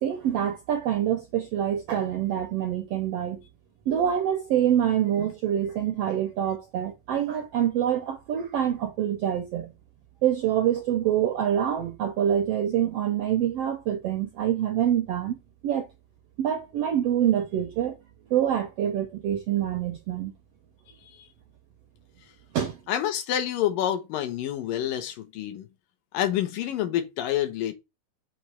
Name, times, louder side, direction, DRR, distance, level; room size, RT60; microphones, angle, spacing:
voice 1, 0.0-3.4 3.9-9.7 10.2-15.4 15.6-15.9 16.4-17.9 18.3-20.3 22.5-22.8, right 10 dB, 80° right, 1.4 m, -26 dB
voice 2, 22.9-25.7 26.1-27.7, left 11 dB, 85° left, 2.6 m, -28 dB
6.4 x 3.1 x 5.6 m
omnidirectional pair, 3.8 m